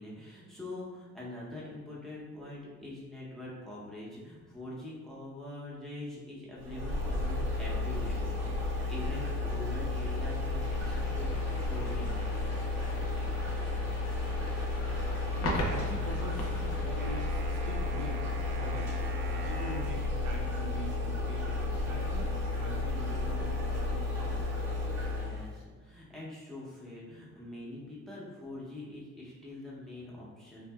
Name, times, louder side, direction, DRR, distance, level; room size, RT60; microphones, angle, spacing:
voice 1, 0.0-11.3 11.6-12.4 25.0-30.7, left 1 dB, ahead, -7 dB, 0.7 m, -44 dB
sound 1, 6.6-25.5, left 2 dB, 60° right, 1.2 m, -32 dB
sound 2, 10.6-17.3, left 2 dB, 60° left, 0.6 m, -40 dB
voice 2, 14.7-18.3 18.6-19.0 19.3-24.5, right 2 dB, 80° right, 0 dB, 0.6 m, -44 dB
sound 3, 17.0-20.0, right 3 dB, 30° right, 0.4 m, -45 dB
2.7 x 2.5 x 2.2 m, 1.3 s
cardioid pair, 90°, 30 cm